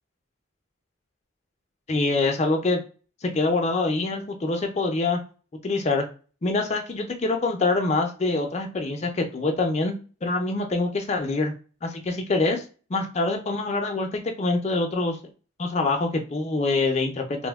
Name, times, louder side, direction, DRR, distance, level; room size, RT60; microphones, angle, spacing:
voice 1, 1.9-2.8 3.2-5.2 5.6-6.0 6.4-11.5 11.8-12.6 12.9-15.2 15.6-17.5, left 3 dB, 35° left, 4 dB, 0.4 m, -25 dB
2.6 x 2.1 x 3.4 m, 0.37 s
head